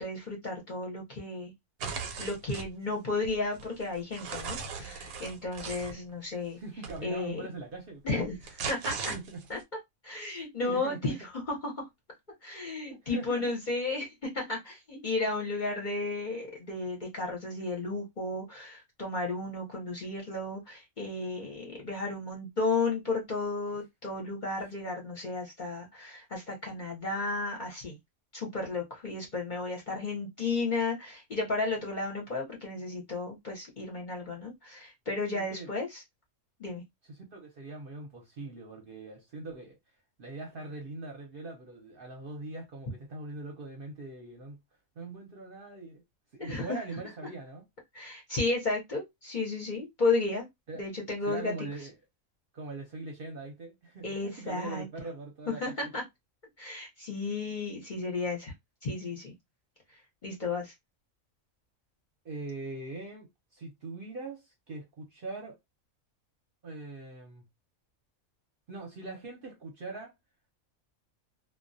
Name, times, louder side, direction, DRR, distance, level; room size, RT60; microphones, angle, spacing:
voice 1, 0.0-1.5 2.2-6.6 7.0-7.5 8.0-9.1 9.5-9.6 10.0-11.2 11.5-11.9 12.4-28.0 28.3-36.0 36.6-36.8 46.4-46.8 47.9-50.5 50.7-51.5 54.0-54.9 55.5-56.0 56.6-58.5 58.8-59.3 59.9-60.7, left 3 dB, 45° left, 0.7 m, -33 dB
sound 1, 1.8-2.7 3.2-5.9 6.8-7.0 8.2-9.6, right 5 dB, 90° right, 1.1 m, -38 dB
voice 2, 6.6-8.2 9.1-9.4 10.3-11.1 12.9-13.5 35.3-35.7 37.1-39.8 40.2-44.6 45.0-46.0 46.3-47.6 50.7-50.8 51.3-51.9 52.5-55.9 62.2-65.6 66.6-67.5 68.7-70.1, right 3 dB, 50° right, 0.7 m, -42 dB
2.2 x 2.2 x 2.5 m
omnidirectional pair, 1.4 m